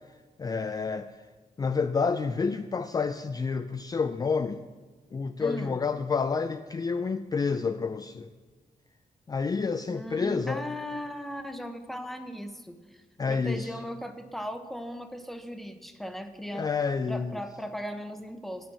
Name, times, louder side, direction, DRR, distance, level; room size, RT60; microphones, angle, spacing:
voice 1, 0.4-1.1 1.6-4.6 5.1-8.3 9.3-10.6 13.2-13.8 16.5-17.4, left 5 dB, 25° left, 8 dB, 0.3 m, -29 dB
voice 2, 5.4-5.8 9.9-13.0 13.3-16.7 17.1-18.7, equal, ahead, 7 dB, 0.8 m, -38 dB
9.2 x 6.2 x 8.4 m, 1.3 s
wide cardioid pair, 120°, 15 cm